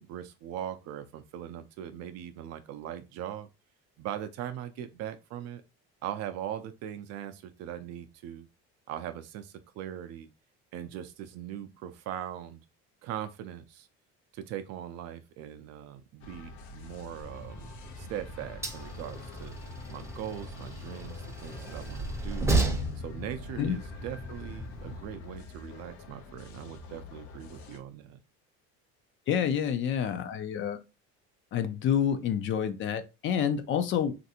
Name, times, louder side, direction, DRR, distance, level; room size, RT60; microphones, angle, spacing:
voice 1, 0.0-3.5 4.0-5.6 6.0-8.5 8.9-10.3 10.7-12.6 13.0-13.9 14.3-17.7 18.0-19.5 19.9-28.2, right 10 dB, 55° right, 0.4 m, -40 dB
sound 1, 16.2-27.8, left 4 dB, 80° left, 0.7 m, -47 dB
Train, 17.2-25.0, right 2 dB, 10° right, 0.6 m, -34 dB
voice 2, 29.3-30.8 31.5-34.2, left 8 dB, 40° left, 0.4 m, -28 dB
3.2 x 2.5 x 2.7 m
cardioid pair, 135°, 30 cm